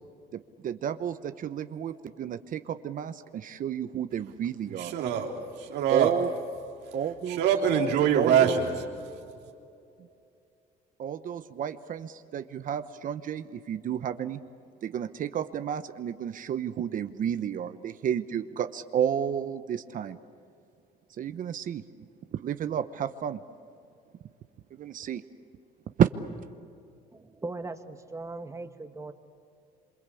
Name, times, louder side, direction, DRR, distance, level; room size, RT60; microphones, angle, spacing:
voice 1, 0.3-4.9 5.9-6.3 6.9-7.4 8.2-8.6 11.0-14.4 14.8-20.2 21.2-21.8 22.3-23.4 24.7-25.2 26.0-26.1, right 9 dB, 50° right, 0.9 m, -31 dB
voice 2, 4.8-5.3 5.6-6.1 7.3-8.7, right 8 dB, 85° right, 3.6 m, -24 dB
voice 3, 27.4-29.1, right 3 dB, 15° right, 1.8 m, -38 dB
27.5 x 24.5 x 8.5 m
cardioid pair, 110°, 17 cm